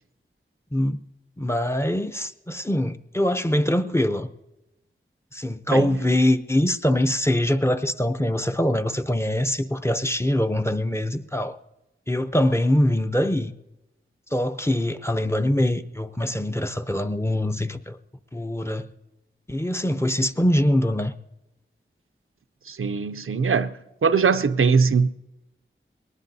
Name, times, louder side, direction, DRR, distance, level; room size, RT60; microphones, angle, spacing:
voice 1, 0.7-1.1 1.4-4.3 5.3-11.6 12.1-13.5 14.3-18.0 18.3-18.9 19.5-21.1, left 1 dB, 10° left, 0.6 m, -23 dB
voice 2, 22.7-23.7 24.0-25.1, right 5 dB, 85° right, 0.5 m, -21 dB
21.5 x 19.0 x 2.7 m
wide cardioid pair, 60°, 21 cm